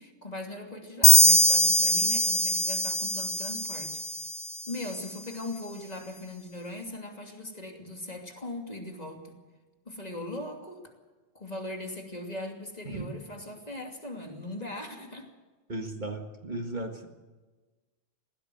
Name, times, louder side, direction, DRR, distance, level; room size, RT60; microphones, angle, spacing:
voice 1, 0.0-4.0 4.7-9.4 9.9-10.8 11.3-15.3, left 1 dB, 35° left, 2 dB, 2.9 m, -39 dB
sound 1, 1.0-4.6, equal, 5° right, 0.6 m, -22 dB
voice 2, 15.7-17.1, right 2 dB, 40° right, 4 dB, 1.9 m, -35 dB
20.5 x 16.5 x 7.8 m, 1.3 s
omnidirectional pair, 1.2 m